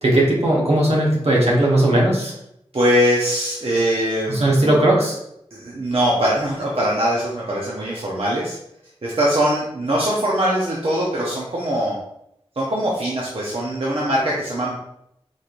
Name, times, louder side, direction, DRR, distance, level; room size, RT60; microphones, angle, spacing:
voice 1, 0.0-2.3 4.3-5.2, right 1 dB, 80° right, -4 dB, 1.2 m, -17 dB
voice 2, 2.7-4.7 5.5-8.6 9.0-12.0 12.6-14.8, equal, 65° right, -5 dB, 0.8 m, -22 dB
4.3 x 3.2 x 2.5 m, 0.77 s
wide cardioid pair, 55°, 10 cm